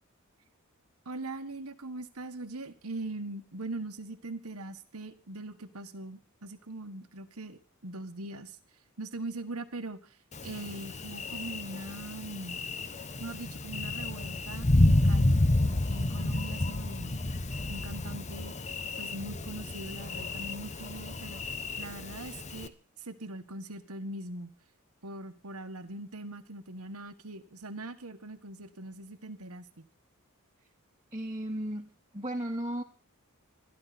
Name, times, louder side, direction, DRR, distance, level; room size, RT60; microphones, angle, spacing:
voice 1, 1.0-8.6 9.0-10.2 10.4-12.6 13.2-15.4 15.9-17.2 17.7-18.5 19.0-21.4 21.8-24.5 25.0-29.9, right 2 dB, 90° right, 10 dB, 1.6 m, -41 dB
Thunder, 10.3-22.7, left 2 dB, 30° left, 1.0 m, -30 dB
voice 2, 31.1-32.8, right 1 dB, 20° right, 0 dB, 1.4 m, -35 dB
27.0 x 12.0 x 4.3 m, 0.36 s
head